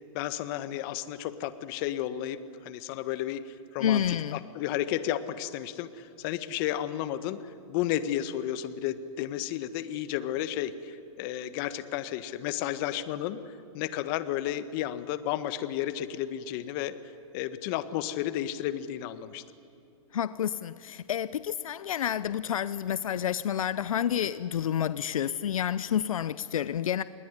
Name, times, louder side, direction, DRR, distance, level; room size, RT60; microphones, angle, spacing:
voice 1, 0.1-2.4 2.6-7.4 7.7-16.9 17.3-19.4, left 12 dB, 40° left, 12 dB, 1.6 m, -32 dB
voice 2, 3.8-4.4 20.1-27.0, left 9 dB, 80° left, 16 dB, 0.7 m, -29 dB
27.0 x 20.5 x 9.9 m, 2.7 s
hypercardioid pair, 140°, 17 cm